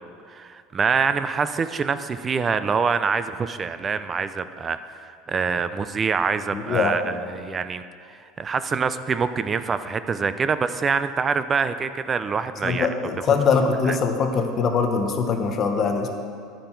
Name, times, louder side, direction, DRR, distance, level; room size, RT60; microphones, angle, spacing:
voice 1, 0.3-7.8 8.1-12.9, right 5 dB, 20° right, 12 dB, 0.3 m, -25 dB
voice 2, 6.5-7.0 12.6-16.1, left 5 dB, 30° left, 4 dB, 0.9 m, -22 dB
12.0 x 9.0 x 4.5 m, 2.3 s
cardioid pair, 170°, 0 cm